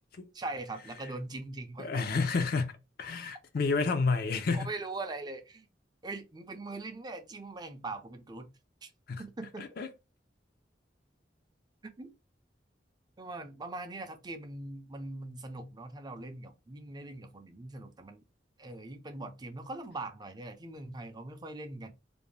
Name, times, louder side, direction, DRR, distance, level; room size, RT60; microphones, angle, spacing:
voice 1, 0.3-2.1 4.5-5.7 6.0-8.5 8.8-8.9 9.2-9.7 11.8-12.1 13.2-18.2 18.6-21.9, right 2 dB, 25° right, 0.5 m, -41 dB
voice 2, 1.8-2.7 3.0-4.7 9.1-9.2 9.6-9.9, left 4 dB, 60° left, 0.5 m, -30 dB
2.6 x 2.1 x 3.1 m
head